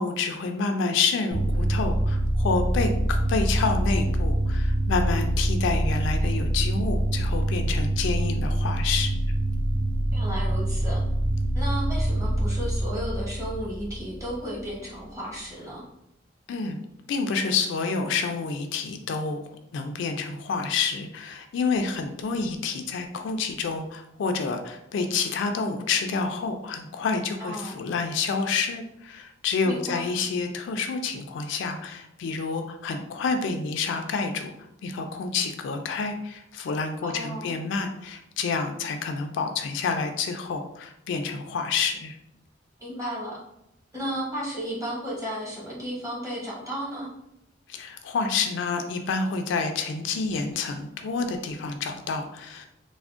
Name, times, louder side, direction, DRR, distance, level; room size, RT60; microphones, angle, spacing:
voice 1, 0.0-9.2 16.5-16.8 17.1-19.4 19.7-34.5 34.8-42.2 47.7-52.7, left 4 dB, 65° left, 6 dB, 0.3 m, -28 dB
sound 1, 1.3-14.7, right 1 dB, 60° right, 0.7 m, -25 dB
voice 2, 10.1-11.0 11.5-15.8 27.4-27.7 29.6-30.1 37.0-37.6 42.8-43.4 43.9-47.1, equal, 15° right, -5 dB, 0.9 m, -33 dB
3.4 x 2.0 x 2.4 m, 0.82 s
head